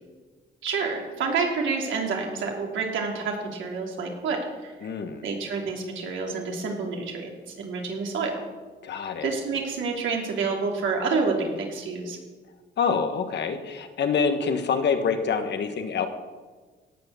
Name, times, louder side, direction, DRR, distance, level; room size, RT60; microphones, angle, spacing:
voice 1, 0.6-4.7 5.2-7.3 7.6-8.4 9.2-12.2, right 4 dB, 75° right, 0 dB, 3.4 m, -28 dB
voice 2, 4.8-5.2 8.8-9.3 12.8-16.1, left 6 dB, 60° left, 7 dB, 1.6 m, -26 dB
17.5 x 7.0 x 7.1 m, 1.4 s
cardioid pair, 90°, 20 cm